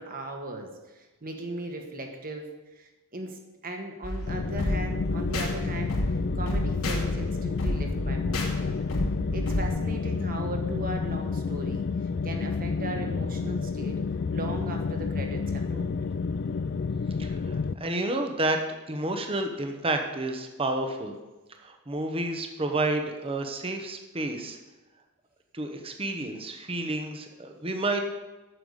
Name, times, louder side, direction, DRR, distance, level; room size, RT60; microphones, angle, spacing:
voice 1, 0.0-2.5 2.7-5.9 6.3-8.8 9.3-11.9 12.2-14.0 14.3-16.0, right 1 dB, 40° right, 3 dB, 1.7 m, -37 dB
sound 1, 4.0-9.7, left 1 dB, 75° left, 2.8 m, -31 dB
sound 2, 4.3-17.7, left 5 dB, 50° left, 0.4 m, -30 dB
voice 2, 17.2-18.6 18.9-21.2 21.6-24.6 25.5-28.0, right 2 dB, 25° right, 5 dB, 1.1 m, -30 dB
9.0 x 7.0 x 8.1 m, 1.1 s
head